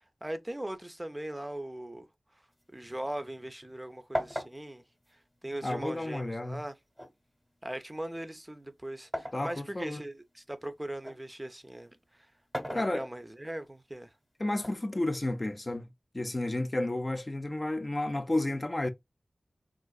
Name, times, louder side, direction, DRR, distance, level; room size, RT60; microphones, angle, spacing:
voice 1, 0.2-2.1 2.7-4.8 5.4-6.7 7.6-12.3 12.7-14.1, right 1 dB, 15° right, 0.5 m, -39 dB
sound 1, 2.5-3.8 4.1-6.1 7.0-9.5 10.0-11.3 12.3-13.5 14.6-15.6, equal, 5° left, 0.9 m, -39 dB
voice 2, 5.6-6.6 9.3-10.0 12.7-13.1 14.4-15.9 16.1-18.9, left 1 dB, 35° left, 0.4 m, -31 dB
3.6 x 2.4 x 2.3 m
wide cardioid pair, 65°, 0 cm